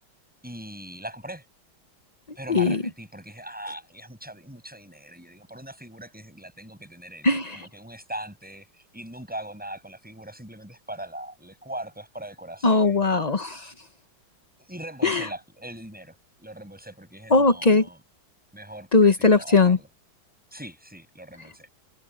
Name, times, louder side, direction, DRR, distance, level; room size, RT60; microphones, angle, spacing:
voice 1, 0.4-1.5 2.4-13.1 14.7-18.0 18.5-19.9 20.5-21.7, right 1 dB, 5° right, 7.0 m, -40 dB
voice 2, 2.5-2.8 7.2-7.7 12.6-13.7 15.0-15.2 17.3-17.9 18.9-19.8, left 3 dB, 40° left, 0.5 m, -19 dB
omnidirectional pair, 2.2 m